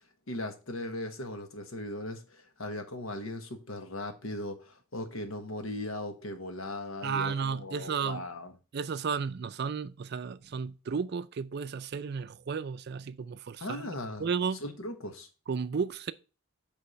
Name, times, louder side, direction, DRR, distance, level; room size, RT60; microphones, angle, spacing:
voice 1, 0.3-8.5 13.6-14.3 14.6-15.3, left 1 dB, 75° left, 1.3 m, -38 dB
voice 2, 7.0-8.2 8.7-14.6 15.5-16.1, right 5 dB, 50° right, 0.4 m, -33 dB
8.1 x 3.5 x 5.7 m
head